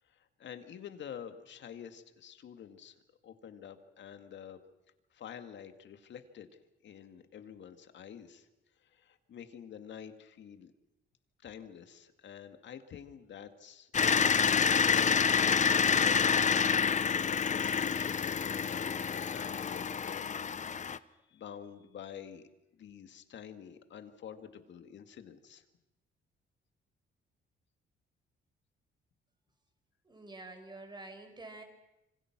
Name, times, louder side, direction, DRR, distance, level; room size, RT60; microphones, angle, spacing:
voice 1, 0.0-4.6 5.1-8.5 8.8-10.7 11.4-22.4 22.7-25.6, left 8 dB, 65° left, 8 dB, 2.2 m, -49 dB
sound 1, 13.9-21.0, left 6 dB, 35° left, 0.9 m, -28 dB
voice 2, 30.0-31.6, right 2 dB, 20° right, 6 dB, 5.4 m, -48 dB
27.0 x 25.0 x 6.2 m, 0.91 s
cardioid pair, 90°, 20 cm